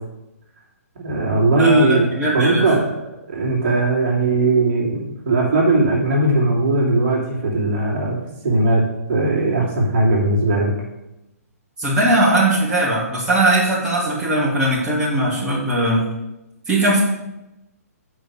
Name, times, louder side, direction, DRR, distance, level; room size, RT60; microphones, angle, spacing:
voice 1, 1.0-2.1 2.3-2.8 3.3-8.2 8.4-8.8 9.1-10.7, right 2 dB, 40° right, -4 dB, 2.9 m, -18 dB
voice 2, 1.6-2.6 11.8-16.0 16.7-17.0, right 1 dB, 10° right, -8 dB, 2.5 m, -19 dB
7.5 x 5.0 x 6.6 m, 0.94 s
figure-of-eight pair, 125°, 9 cm